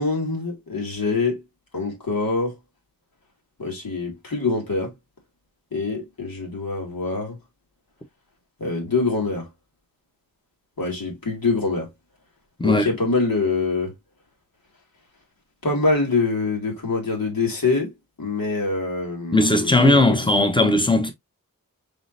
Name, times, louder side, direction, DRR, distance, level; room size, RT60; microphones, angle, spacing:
voice 1, 0.0-1.4 1.7-2.5 3.6-4.9 5.7-7.4 8.6-9.5 10.8-11.9 12.6-13.9 15.6-20.0, left 3 dB, 80° left, 2.4 m, -24 dB
voice 2, 19.3-21.1, left 2 dB, 15° left, 1.0 m, -17 dB
5.0 x 3.8 x 2.5 m
wide cardioid pair, 75°, 35 cm